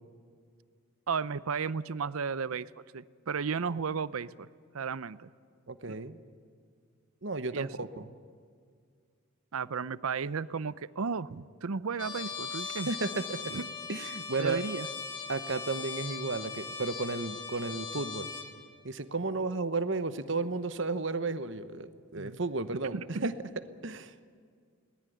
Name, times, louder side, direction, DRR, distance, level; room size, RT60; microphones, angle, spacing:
voice 1, 1.1-4.5 4.7-5.3 5.9-6.0 7.5-7.7 9.5-12.9 13.5-13.7 14.4-14.9 22.2-22.4 22.9-23.3, right 5 dB, 85° right, 18 dB, 0.6 m, -34 dB
voice 2, 5.7-6.2 7.2-8.1 12.9-13.5 13.9-14.6 15.3-18.3 18.8-23.3 23.8-24.1, right 3 dB, 60° right, 12 dB, 1.0 m, -33 dB
Trumpet, 12.0-18.5, left 5 dB, 20° left, 2.5 m, -39 dB
21.5 x 19.0 x 9.3 m, 2.1 s
head